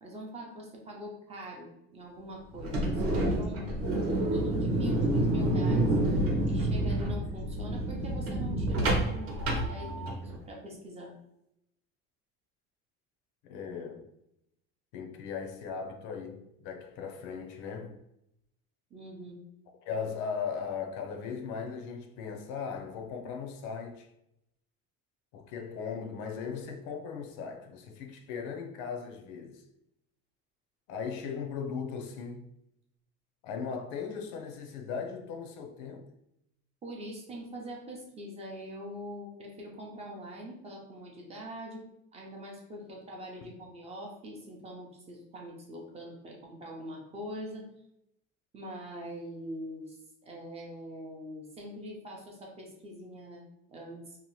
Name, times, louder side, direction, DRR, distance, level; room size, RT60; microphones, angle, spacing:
voice 1, 0.0-3.7 4.2-6.0 6.5-10.2 10.5-11.1 18.9-19.4 36.8-41.8 42.1-47.7 48.5-54.0, equal, 20° right, 0.5 m, -43 dB
sound 1, 2.5-10.4, right 1 dB, 50° right, 0.8 m, -28 dB
voice 2, 13.4-14.1 14.9-18.0 19.8-24.1 25.3-29.6 30.9-32.4 33.4-36.1, left 6 dB, 80° left, 0.5 m, -38 dB
2.8 x 2.0 x 2.9 m
cardioid pair, 160°, 29 cm